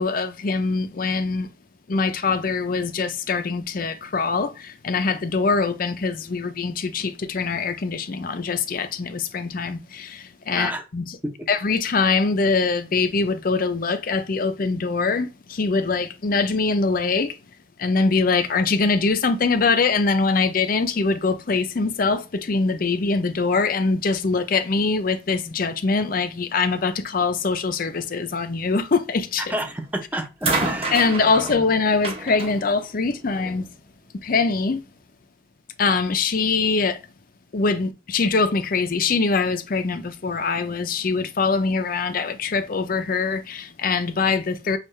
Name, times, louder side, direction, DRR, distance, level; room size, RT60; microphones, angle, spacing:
voice 1, 0.0-1.5 1.9-11.2 11.5-17.4 17.8-29.5 30.9-33.7 34.2-34.8 35.8-37.0 37.5-44.8, left 4 dB, 45° left, 0.5 m, -23 dB
voice 2, 10.5-10.8 11.2-11.5 29.4-31.0, equal, 10° right, 0.6 m, -30 dB
sound 1, 29.5-29.8 30.4-33.7 34.7-34.8, right 3 dB, 30° right, 0.9 m, -29 dB
6.4 x 2.4 x 3.2 m
head